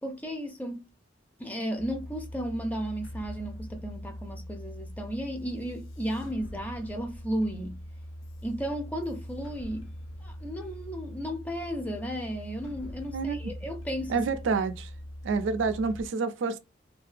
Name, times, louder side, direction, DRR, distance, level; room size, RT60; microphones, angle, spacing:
voice 1, 0.0-0.8 1.4-7.8 8.4-9.9 10.2-14.2, equal, 10° left, 0.4 m, -34 dB
sound 1, 1.8-16.1, equal, 85° left, 0.4 m, -42 dB
voice 2, 13.1-13.5 14.1-14.9 15.2-16.6, right 4 dB, 75° right, 0.3 m, -28 dB
2.4 x 2.2 x 2.4 m
head